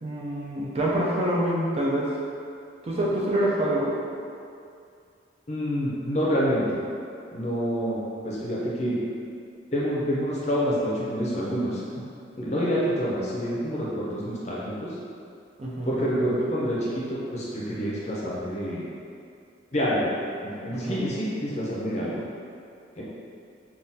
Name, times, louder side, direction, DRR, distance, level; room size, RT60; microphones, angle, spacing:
voice 1, 0.0-2.1 2.8-4.0 15.6-16.0 20.7-21.0, right 1 dB, 30° right, -5 dB, 0.4 m, -26 dB
voice 2, 5.5-6.8 7.3-9.0 9.7-11.8 12.4-14.9 15.9-18.9 19.7-20.1 20.4-22.2 23.0-23.1, equal, 35° left, -6 dB, 0.5 m, -27 dB
3.6 x 2.3 x 2.7 m, 2.4 s
head